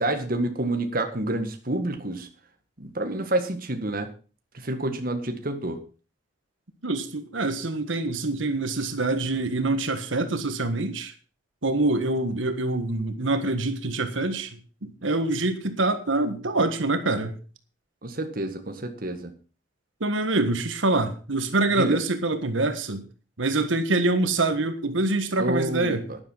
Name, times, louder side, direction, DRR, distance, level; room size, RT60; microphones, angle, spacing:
voice 1, 0.0-2.3 2.8-4.1 4.5-5.8 18.0-19.3 21.7-22.0 25.4-26.2, right 1 dB, 50° right, 6 dB, 1.8 m, -28 dB
voice 2, 6.8-11.1 11.6-17.3 20.0-23.0 23.4-26.0, right 2 dB, 90° right, 8 dB, 1.6 m, -25 dB
11.5 x 10.5 x 5.6 m, 0.37 s
head